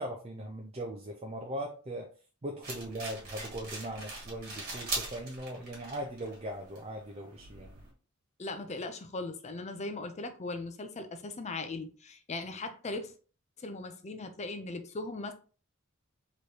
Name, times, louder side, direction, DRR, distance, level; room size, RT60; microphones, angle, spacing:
voice 1, 0.0-2.1 2.4-7.8, right 1 dB, 30° right, 0.5 m, -39 dB
sound 1, 2.6-7.9, right 2 dB, 45° right, 1.6 m, -42 dB
voice 2, 8.4-13.1 13.6-15.3, left 2 dB, 30° left, 0.5 m, -39 dB
4.8 x 3.1 x 2.8 m
head